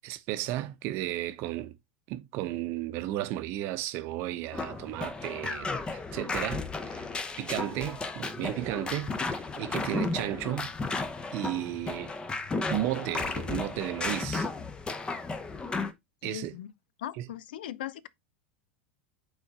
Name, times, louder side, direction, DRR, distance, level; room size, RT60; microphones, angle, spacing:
voice 1, 0.0-1.7 2.1-7.0 7.4-10.7 11.3-12.1 12.7-14.5 16.2-16.5 17.2-17.3, right 14 dB, 45° right, 0.8 m, -34 dB
sound 1, 4.5-15.9, left 3 dB, 15° left, 0.8 m, -34 dB
voice 2, 16.2-16.7 17.0-18.1, left 12 dB, 60° left, 0.5 m, -39 dB
8.6 x 4.2 x 3.7 m
figure-of-eight pair, 85°, 6 cm